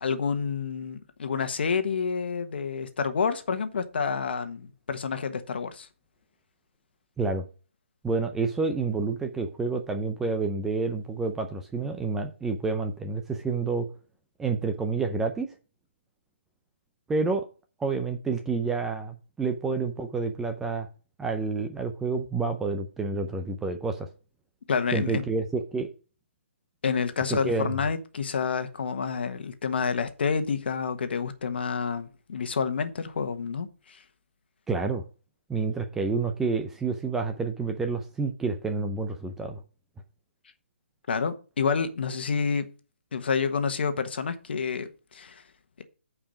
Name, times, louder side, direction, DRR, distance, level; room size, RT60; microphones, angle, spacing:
voice 1, 0.0-5.9 24.7-25.2 26.8-34.0 41.1-42.7 43.1-45.4 45.8-45.9, left 5 dB, 55° left, 1.3 m, -29 dB
voice 2, 8.0-13.9 14.4-15.5 17.1-17.4 17.8-20.9 21.2-24.1 24.9-25.9 27.3-27.7 34.7-35.0 35.5-39.6, right 4 dB, 5° right, 0.5 m, -29 dB
8.7 x 4.9 x 5.1 m
hypercardioid pair, 160°, 7 cm